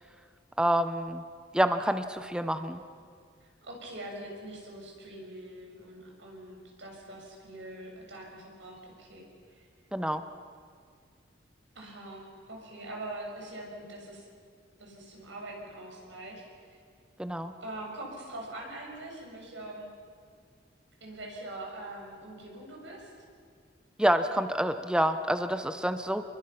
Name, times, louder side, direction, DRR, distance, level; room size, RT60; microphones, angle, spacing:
voice 1, 0.6-1.2 1.5-2.8 9.9-10.2 17.2-17.5 24.0-26.2, right 1 dB, 5° right, 9 dB, 0.7 m, -27 dB
voice 2, 3.4-9.7 11.7-14.3 14.8-16.8 17.6-19.9 21.0-23.1, right 1 dB, 70° right, -1 dB, 6.7 m, -43 dB
29.0 x 22.5 x 5.9 m, 2.1 s
head